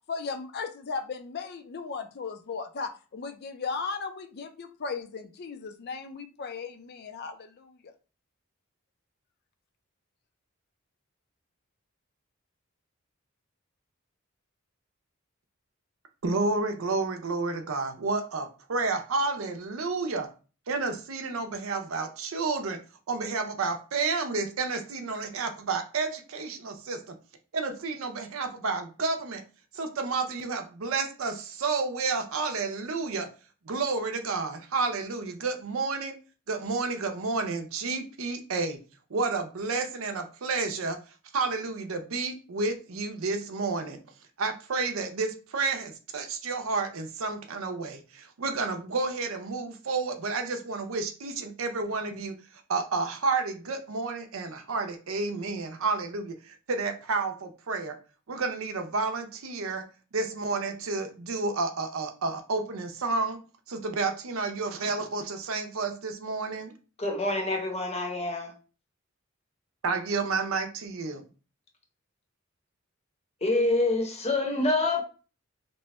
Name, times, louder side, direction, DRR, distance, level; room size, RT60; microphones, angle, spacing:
voice 1, 0.1-7.8, left 5 dB, 50° left, 0.5 m, -36 dB
voice 2, 16.2-20.3 20.7-22.8 23.1-27.1 27.5-29.4 29.7-33.3 33.7-36.2 36.5-38.8 39.1-41.0 41.3-44.0 44.4-52.3 52.7-56.3 56.7-58.0 58.3-59.8 60.1-63.4 63.7-66.7 69.8-71.2, right 3 dB, 85° right, 0.6 m, -30 dB
voice 3, 67.0-68.5 73.4-75.0, left 2 dB, 30° left, 0.8 m, -26 dB
3.0 x 2.2 x 4.0 m
head